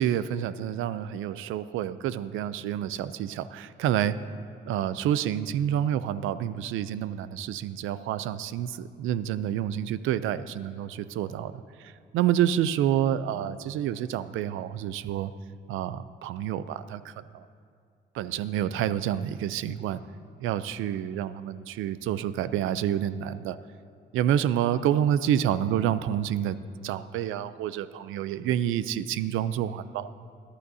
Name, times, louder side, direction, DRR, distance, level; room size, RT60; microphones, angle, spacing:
voice 1, 0.0-4.2 4.7-15.3 15.7-17.5 18.1-20.0 20.4-23.6 24.1-26.6 26.8-30.1, right 10 dB, 90° right, 14 dB, 0.5 m, -28 dB
21.5 x 11.5 x 2.7 m, 2.2 s
cardioid pair, 90°, 20 cm